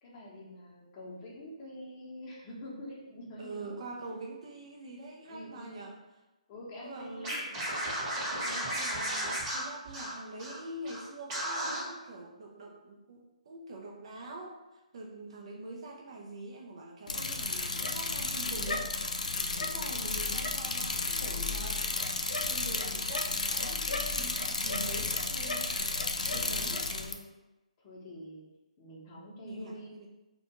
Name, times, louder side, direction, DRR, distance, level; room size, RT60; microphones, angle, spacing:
voice 1, 0.0-3.8 5.2-5.9 6.5-7.4 19.9-20.3 26.3-27.2 27.8-28.4 28.8-29.9, left 1 dB, 25° left, -4 dB, 0.7 m, -46 dB
voice 2, 3.4-6.0 6.8-7.7 8.3-18.9 19.6-21.8 22.4-26.0 26.3-26.9 29.4-30.1, right 2 dB, 50° right, -1 dB, 0.4 m, -45 dB
Scratching (performance technique), 7.2-10.6 10.8-11.0 11.3-11.8, right 1 dB, 25° right, 1.0 m, -34 dB
Bicycle, 17.1-27.1, left 3 dB, 90° left, 0.3 m, -33 dB
2.4 x 2.2 x 2.9 m, 1.0 s
hypercardioid pair, 155°, 4 cm